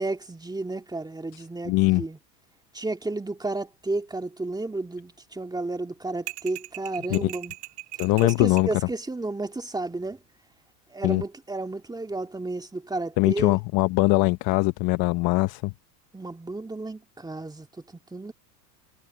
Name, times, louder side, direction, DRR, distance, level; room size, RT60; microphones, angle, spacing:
voice 1, 0.0-2.2 2.7-7.5 8.2-10.2 10.9-13.6 16.1-17.7 17.9-18.3, right 2 dB, 10° right, 2.4 m, -32 dB
voice 2, 1.7-2.0 7.1-7.3 8.0-8.7 11.0-11.2 13.2-15.7, left 23 dB, 45° left, 0.9 m, -22 dB
sound 1, 6.3-8.7, right 19 dB, 50° right, 2.9 m, -39 dB
hypercardioid pair, 105°, 49 cm